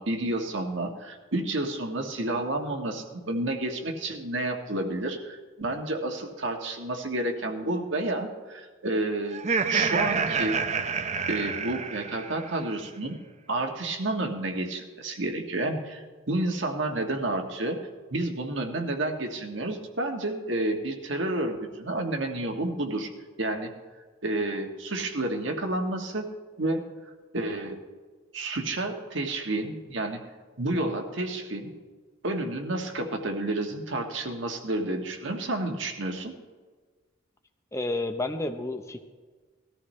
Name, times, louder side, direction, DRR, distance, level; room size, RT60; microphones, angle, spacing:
voice 1, 0.0-10.6 11.3-13.2 13.5-17.8 18.1-23.1 23.4-23.7 24.2-26.3 26.6-26.8 27.3-27.8 28.3-30.2 30.6-31.7 32.2-36.3, right 2 dB, 65° right, 4 dB, 1.5 m, -30 dB
Laughter, 9.3-12.5, right 5 dB, 35° right, 0.5 m, -28 dB
voice 2, 37.7-39.0, left 2 dB, 15° left, 5 dB, 0.7 m, -30 dB
19.5 x 13.5 x 3.2 m, 1.4 s
head